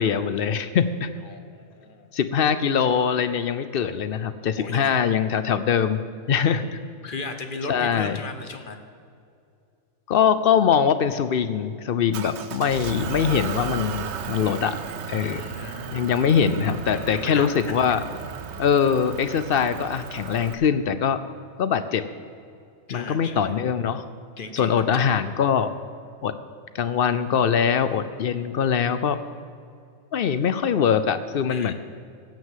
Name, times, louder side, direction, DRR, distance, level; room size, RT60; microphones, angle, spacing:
voice 1, 0.0-1.1 2.1-6.0 6.3-6.7 7.7-8.2 10.1-14.8 15.1-15.4 15.9-18.0 18.6-21.2 21.6-22.0 22.9-24.0 24.5-25.7 26.2-26.3 26.7-29.2 30.1-31.7, left 7 dB, 60° left, 12 dB, 0.6 m, -22 dB
voice 2, 1.2-2.1 4.6-4.9 7.0-8.8 15.2-16.0 16.9-17.5 22.9-23.5 24.4-24.7 31.5-31.7, left 3 dB, 40° left, 7 dB, 1.0 m, -36 dB
Motor vehicle (road) / Engine, 12.1-20.5, right 7 dB, 60° right, 0.9 m, -35 dB
16.0 x 6.1 x 7.4 m, 2.4 s
omnidirectional pair, 1.5 m